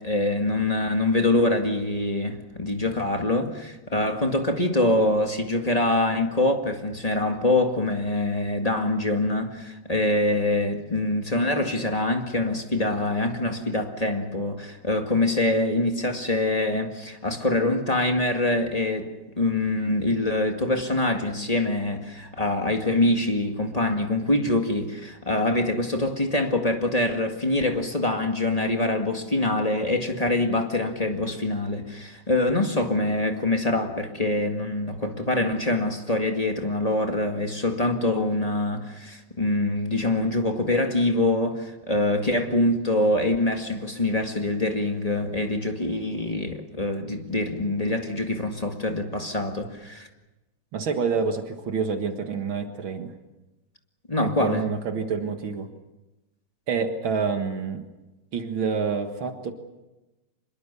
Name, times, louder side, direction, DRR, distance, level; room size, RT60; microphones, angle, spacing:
voice 1, 0.0-50.1 54.1-54.6, left 2 dB, 20° left, 1.9 m, -24 dB
voice 2, 50.7-53.1 54.2-55.7 56.7-57.8 58.3-59.5, right 5 dB, 70° right, 2.4 m, -27 dB
25.5 x 22.5 x 6.9 m
omnidirectional pair, 2.2 m